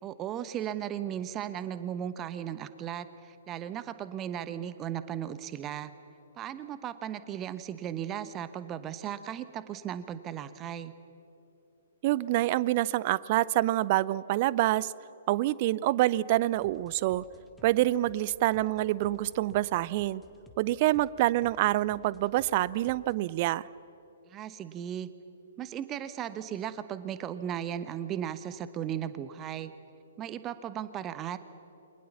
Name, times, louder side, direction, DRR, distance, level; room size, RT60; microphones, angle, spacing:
voice 1, 0.0-5.9 6.3-10.9 24.3-25.1 25.6-29.7 30.2-31.4, right 10 dB, 20° right, 13 dB, 1.0 m, -36 dB
voice 2, 12.0-14.9 15.3-17.2 17.6-20.2 20.6-23.7, right 16 dB, 35° right, 20 dB, 0.6 m, -26 dB
sound 1, 16.5-23.1, left 2 dB, 10° left, 1.9 m, -56 dB
28.5 x 24.0 x 7.2 m, 2.9 s
figure-of-eight pair, 120°, 0 cm